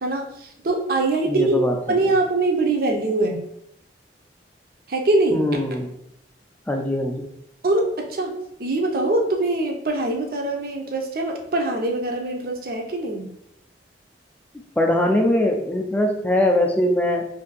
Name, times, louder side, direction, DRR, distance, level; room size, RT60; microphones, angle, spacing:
voice 1, 0.0-1.6 1.9-3.4 4.9-5.5 7.6-8.3 8.6-13.3, right 2 dB, 55° right, 2 dB, 0.5 m, -23 dB
voice 2, 1.2-2.0 5.3-5.9 6.7-7.3 14.8-17.3, left 1 dB, 10° left, 2 dB, 0.4 m, -21 dB
2.6 x 2.6 x 3.9 m, 0.74 s
head